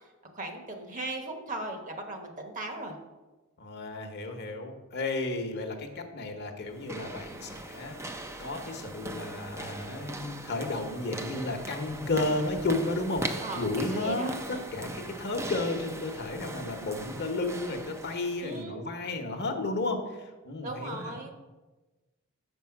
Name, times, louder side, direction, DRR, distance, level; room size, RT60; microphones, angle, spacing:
voice 1, 0.3-3.0 13.4-14.6 18.4-18.8 20.6-21.3, right 2 dB, 35° right, 4 dB, 1.0 m, -38 dB
voice 2, 3.6-14.3 14.7-21.1, left 2 dB, 50° left, 5 dB, 1.0 m, -33 dB
sound 1, 6.7-18.6, right 2 dB, 15° right, 0.4 m, -40 dB
6.9 x 5.4 x 5.9 m, 1.2 s
head